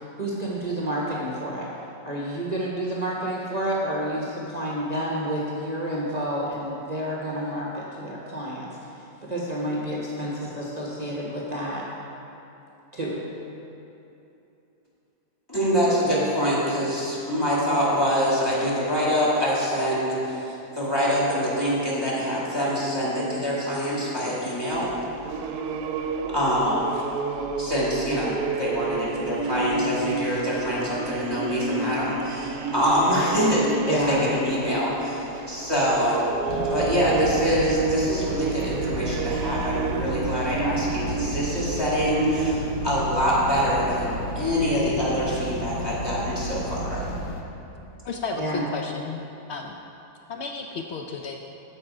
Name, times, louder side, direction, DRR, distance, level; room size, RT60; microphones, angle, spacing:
voice 1, 0.2-1.7 2.0-8.7 9.2-11.9 12.9-13.2 33.9-34.3 48.4-48.6, right 1 dB, 30° right, -5 dB, 0.9 m, -29 dB
voice 2, 15.5-20.4 20.8-24.9 26.3-26.9 27.6-35.2 35.5-36.3 36.7-47.1, equal, 15° left, -7 dB, 2.2 m, -25 dB
sound 1, 24.7-42.5, right 4 dB, 75° right, 1.1 m, -31 dB
sound 2, 36.5-47.4, equal, 45° left, 0.7 m, -32 dB
voice 3, 48.0-49.8 50.3-51.4, left 4 dB, 80° left, 3 dB, 0.5 m, -33 dB
14.0 x 5.4 x 4.9 m, 2.9 s
omnidirectional pair, 1.7 m